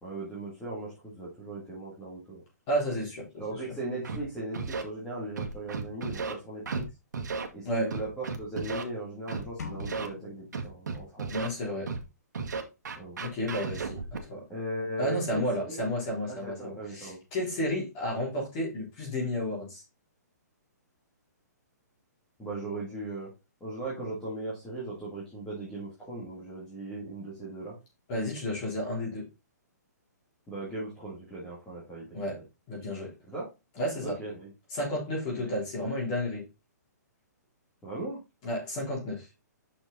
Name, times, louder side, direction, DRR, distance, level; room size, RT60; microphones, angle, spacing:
voice 1, 0.0-2.4 3.4-6.9 7.5-11.3 13.0-13.2 14.5-15.8 16.3-17.2 22.4-23.3 23.6-27.8 30.5-32.4 33.3-33.4 34.0-34.5 35.3-35.5 37.8-38.2, right 2 dB, 5° left, 1.9 m, -38 dB
voice 2, 2.7-3.6 7.6-7.9 11.3-11.9 13.2-14.4 15.0-19.8 28.1-29.3 32.1-32.4 32.7-33.1 33.8-34.2 34.7-36.5 38.4-39.3, equal, 25° left, 3.7 m, -32 dB
Scratching (performance technique), 4.0-4.2 4.5-4.8 5.4-6.3 6.7-6.8 7.1-7.5 7.9-8.8 9.3-9.4 9.8-10.1 10.5-11.5 11.9-12.0 12.3-14.2, right 5 dB, 75° right, 1.7 m, -34 dB
sound 1, 9.6-11.6, left 5 dB, 65° left, 2.1 m, -44 dB
6.3 x 6.2 x 4.1 m
hypercardioid pair, 175°, 10 cm